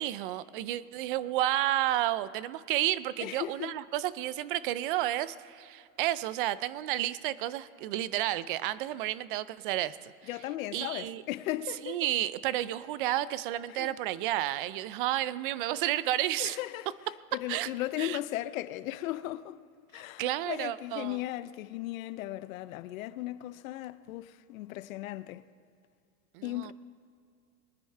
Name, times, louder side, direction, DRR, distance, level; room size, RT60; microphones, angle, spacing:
voice 1, 0.0-10.1 10.7-11.2 11.8-16.6 17.5-17.7 18.0-18.2 19.9-21.2 26.3-26.7, right 14 dB, 40° right, 0.4 m, -31 dB
voice 2, 3.2-3.8 10.3-12.0 13.7-14.0 16.4-16.9 17.3-19.6 19.9-25.4 26.4-26.7, left 15 dB, 70° left, 0.7 m, -36 dB
22.0 x 9.9 x 4.4 m
supercardioid pair, 155°, 42 cm